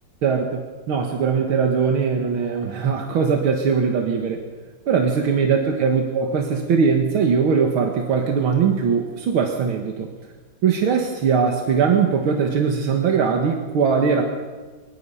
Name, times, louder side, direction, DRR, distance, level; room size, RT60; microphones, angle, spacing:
voice 1, 0.2-4.4 4.9-10.1 10.6-14.2, right 6 dB, 90° right, 3 dB, 2.4 m, -20 dB
23.0 x 20.5 x 5.7 m, 1.4 s
omnidirectional pair, 2.2 m